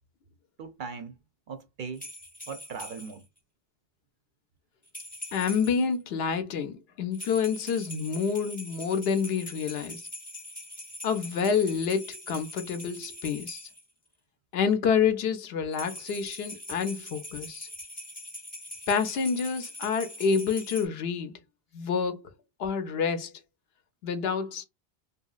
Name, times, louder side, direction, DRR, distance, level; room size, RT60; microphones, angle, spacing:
voice 1, 0.6-1.2 1.5-2.1 2.5-3.2, right 5 dB, 60° right, 0.6 m, -39 dB
sound 1, 2.0-3.2 4.9-5.9 7.1-13.8 15.7-20.9, left 1 dB, 10° left, 0.7 m, -42 dB
voice 2, 5.3-10.0 11.0-13.6 14.5-17.7 18.9-21.4 21.7-22.2 22.6-23.3 24.0-24.6, left 6 dB, 70° left, 0.8 m, -28 dB
2.8 x 2.7 x 2.3 m
omnidirectional pair, 1.1 m